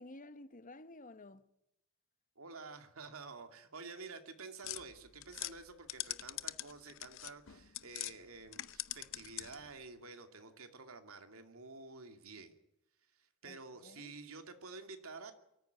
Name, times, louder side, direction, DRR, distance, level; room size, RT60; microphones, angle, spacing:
voice 1, 0.0-1.4 13.4-14.1, left 2 dB, 40° left, 1.1 m, -53 dB
voice 2, 2.4-12.6 13.2-15.3, right 4 dB, 80° right, 2.6 m, -50 dB
sound 1, 4.6-8.2 8.5-9.7, left 14 dB, 65° left, 0.8 m, -43 dB
23.5 x 14.0 x 9.3 m
head